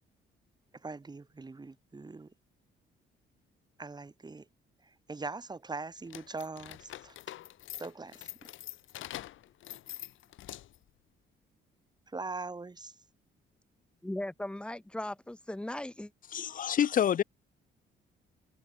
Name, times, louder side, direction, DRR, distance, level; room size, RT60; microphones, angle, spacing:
voice 1, 0.8-2.3 3.8-4.4 5.1-7.2 7.8-8.3 12.1-12.9, right 3 dB, 20° right, 1.4 m, -41 dB
sound 1, 6.0-10.9, left 13 dB, 80° left, 1.8 m, -45 dB
voice 2, 14.0-16.1, left 1 dB, 5° left, 0.6 m, -38 dB
voice 3, 16.3-17.2, left 9 dB, 45° left, 0.6 m, -27 dB
cardioid pair, 90°, 20 cm